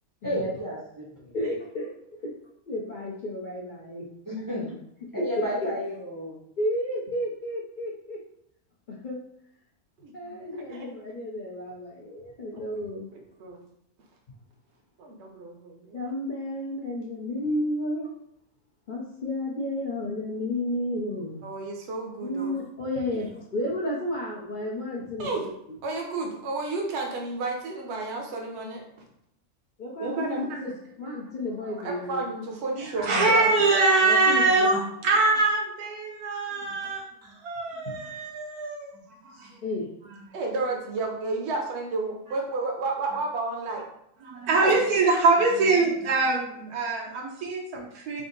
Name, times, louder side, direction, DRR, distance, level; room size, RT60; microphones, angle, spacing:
voice 1, 0.2-1.3 4.3-4.7 5.1-6.4, equal, 20° right, -5 dB, 0.5 m, -32 dB
voice 2, 1.3-1.9 2.7-4.1 5.2-5.3 6.6-8.2 8.9-9.2 10.1-13.1 15.9-18.1 18.9-21.4 22.2-25.4 29.8-32.3 34.0-34.4 37.8-38.0 39.6-39.9, left 1 dB, 65° left, -4 dB, 0.4 m, -32 dB
voice 3, 10.0-10.3 10.7-10.9 12.5-12.6 13.4-13.6 15.0-16.0 21.4-22.6 23.1-23.3 25.2-25.5 25.8-28.8 30.0-30.7 31.6-33.6 40.3-43.8 44.5-44.8, right 3 dB, 55° right, 1 dB, 0.9 m, -31 dB
voice 4, 32.8-39.5 44.2-48.2, right 3 dB, 80° right, -1 dB, 1.4 m, -24 dB
3.5 x 2.6 x 3.8 m, 0.75 s
omnidirectional pair, 1.6 m